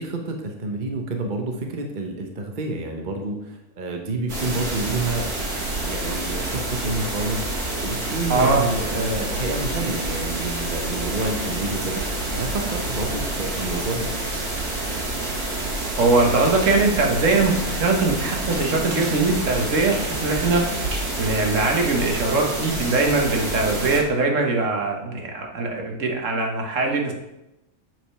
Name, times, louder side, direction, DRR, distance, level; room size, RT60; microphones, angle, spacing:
voice 1, 0.0-5.4 5.8-7.5 7.8-14.1, right 2 dB, 40° right, 3 dB, 0.9 m, -29 dB
sound 1, 4.3-24.0, right 2 dB, 85° right, 2.6 m, -28 dB
voice 2, 8.3-8.6 16.0-20.8 21.2-27.1, right 3 dB, 60° right, 1 dB, 1.5 m, -21 dB
7.9 x 5.0 x 5.6 m, 0.93 s
omnidirectional pair, 1.6 m